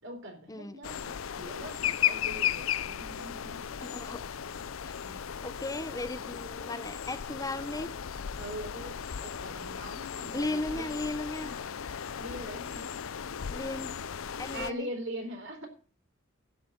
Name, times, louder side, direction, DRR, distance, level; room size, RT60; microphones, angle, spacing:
voice 1, 0.0-3.7 5.0-5.2 8.4-11.0 12.1-12.9 14.5-15.7, equal, 65° right, 3.9 m, -42 dB
sound 1, 0.8-14.7, left 9 dB, 85° left, 0.6 m, -35 dB
voice 2, 3.8-4.3 4.8-8.0 10.3-11.6 13.5-14.0 14.4-14.9, left 2 dB, 15° left, 0.7 m, -36 dB
11.0 x 6.7 x 9.4 m
head